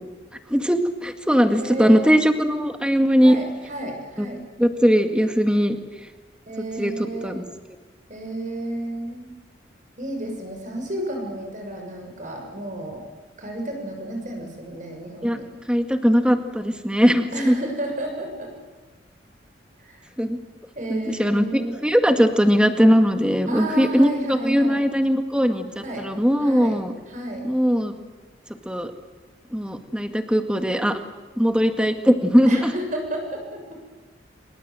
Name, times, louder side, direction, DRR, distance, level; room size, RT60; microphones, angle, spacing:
voice 1, 0.5-3.4 4.2-4.3 4.6-5.8 6.8-7.4 15.2-15.4 15.7-17.6 20.2-20.4 20.9-26.9 27.4-27.9 28.7-28.9 29.5-31.0 31.4-32.7, equal, 5° right, 6 dB, 1.9 m, -20 dB
voice 2, 1.5-2.1 3.2-4.4 6.5-7.3 8.1-9.3 10.0-13.0 13.4-15.5 17.3-18.5 19.8-20.1 20.8-21.8 23.5-24.8 25.8-26.1 26.4-26.8 27.1-27.4 32.5-33.8, right 1 dB, 40° right, 3 dB, 6.8 m, -32 dB
27.0 x 25.0 x 7.9 m, 1.3 s
head